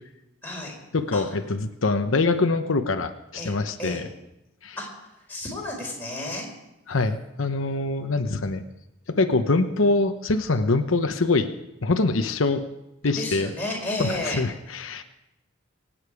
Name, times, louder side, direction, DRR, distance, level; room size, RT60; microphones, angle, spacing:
voice 1, 0.4-0.7 1.1-1.3 3.4-3.5 3.8-4.0 4.8-6.5 13.1-14.4, left 1 dB, 10° left, -3 dB, 4.5 m, -32 dB
voice 2, 0.9-4.1 4.6-4.8 6.9-8.6 9.1-11.5 11.8-12.6 13.0-13.5 14.0-15.0, left 3 dB, 85° left, 7 dB, 0.9 m, -24 dB
25.0 x 8.8 x 4.9 m, 0.91 s
head